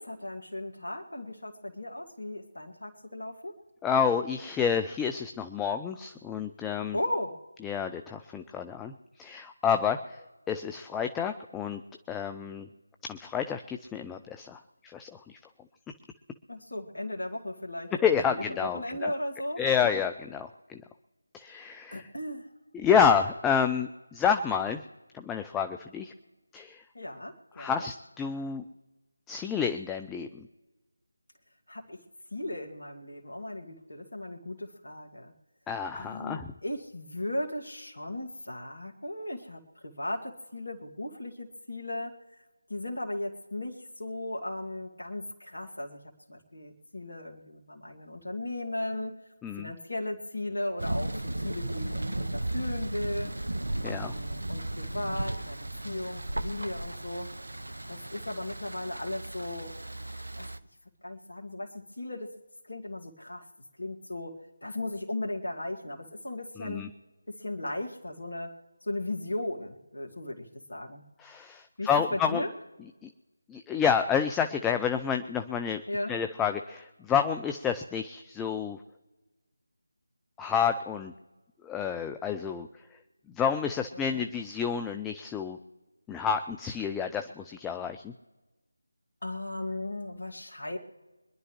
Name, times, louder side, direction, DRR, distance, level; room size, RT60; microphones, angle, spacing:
voice 1, 0.0-3.5 6.9-7.4 16.5-19.9 21.9-22.5 26.9-27.9 31.7-32.0 32.3-35.3 35.9-42.1 42.7-46.0 46.3-49.2 49.5-51.1 51.4-53.3 53.8-55.6 55.8-57.3 57.9-59.8 60.4-60.5 61.0-62.3 62.7-63.5 63.8-66.9 67.3-71.0 71.8-72.5 75.9-76.1 83.9-84.2 89.2-90.8, left 1 dB, 65° left, 1 dB, 2.1 m, -36 dB
voice 2, 3.8-7.0 7.6-10.2 10.5-11.8 12.1-12.7 13.1-15.4 18.0-19.1 19.6-20.8 21.3-22.1 22.7-24.8 25.1-26.1 26.5-26.8 27.6-28.6 29.3-30.5 35.7-36.5 49.4-49.7 53.8-54.1 66.6-66.9 71.2-72.4 73.0-73.1 73.5-75.8 76.1-78.8 80.4-81.1 81.6-82.7 83.3-85.6 86.1-88.1, left 7 dB, 5° left, 6 dB, 0.4 m, -29 dB
Thunder, 50.8-60.6, right 1 dB, 70° right, 0.8 m, -35 dB
25.0 x 11.0 x 3.1 m, 1.2 s
figure-of-eight pair, 160°, 0 cm